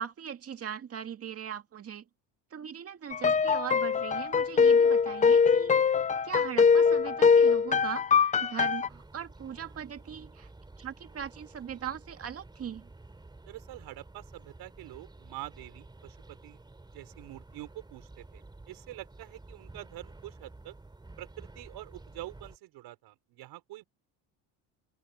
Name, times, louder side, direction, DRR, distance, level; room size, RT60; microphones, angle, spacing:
voice 1, 0.0-2.1 2.5-5.8 6.2-10.5 10.8-12.9, right 9 dB, 35° right, 2.0 m, -39 dB
sound 1, 3.1-8.9, left 6 dB, 20° left, 0.5 m, -23 dB
sound 2, 8.9-22.6, right 2 dB, 10° right, 3.9 m, -51 dB
voice 2, 13.5-16.6 16.9-20.8 21.2-23.8, right 16 dB, 70° right, 5.5 m, -46 dB
cardioid pair, 135°, 40 cm